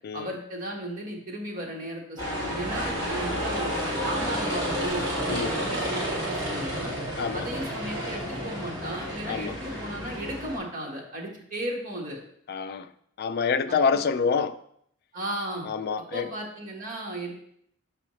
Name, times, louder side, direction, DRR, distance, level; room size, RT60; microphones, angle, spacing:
voice 1, 0.1-6.9 7.3-12.2 13.7-14.0 15.1-15.7 16.1-17.3, right 1 dB, 40° right, 1.5 m, -35 dB
sound 1, 2.2-10.6, equal, 20° right, 2.1 m, -30 dB
voice 2, 12.5-12.9 13.2-14.6 15.7-16.3, left 5 dB, 50° left, 0.3 m, -26 dB
6.5 x 5.5 x 3.1 m
head